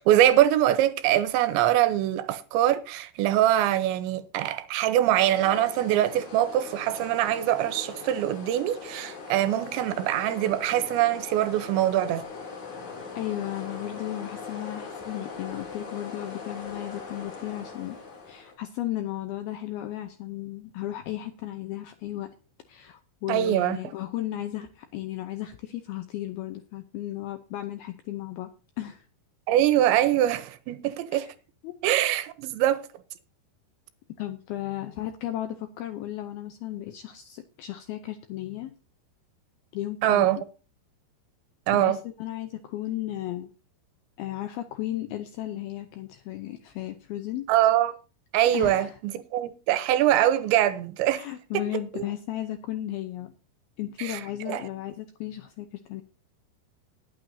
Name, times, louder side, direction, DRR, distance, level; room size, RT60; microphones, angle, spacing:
voice 1, 0.1-12.2 23.3-23.8 29.5-31.3 31.8-32.8 40.0-40.4 41.7-42.0 47.5-48.0 48.3-51.2 51.5-51.6 51.9-52.1 54.0-54.2 54.5-54.6, right 12 dB, 80° right, 3.1 m, -23 dB
sound 1, 5.1-18.6, left 4 dB, 45° left, 3.9 m, -40 dB
voice 2, 13.2-18.0 18.3-22.3 22.7-28.5 28.8-29.0 31.1-31.3 31.6-31.7 34.2-38.8 39.7-40.3 41.7-43.5 44.2-47.5 48.5-49.0 51.1-53.3 53.8-56.0, left 13 dB, 80° left, 2.2 m, -35 dB
20.0 x 8.7 x 2.7 m
omnidirectional pair, 5.3 m